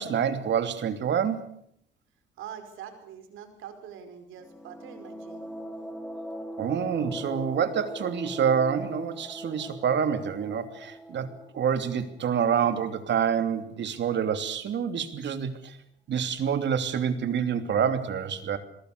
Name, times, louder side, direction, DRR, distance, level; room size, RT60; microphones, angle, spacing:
voice 1, 0.0-1.6 6.6-11.3 11.5-15.8 16.1-18.6, right 7 dB, 65° right, 8 dB, 3.1 m, -27 dB
voice 2, 2.4-5.5, right 8 dB, 90° right, 8 dB, 5.1 m, -44 dB
sound 1, 4.4-13.0, equal, 5° left, 3.9 m, -41 dB
28.5 x 21.5 x 6.8 m, 0.70 s
cardioid pair, 90°, 20 cm